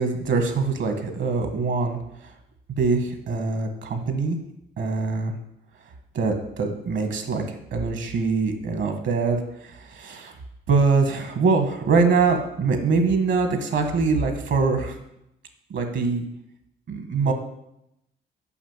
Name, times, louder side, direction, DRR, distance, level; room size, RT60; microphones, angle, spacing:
voice 1, 0.0-2.0 2.8-4.4 4.8-5.3 6.1-7.4 7.7-9.4 9.6-10.3 10.7-15.0 15.7-16.3 16.9-17.3, right 4 dB, 65° right, 6 dB, 1.7 m, -23 dB
7.1 x 5.5 x 7.3 m, 0.82 s
cardioid pair, 90°, 20 cm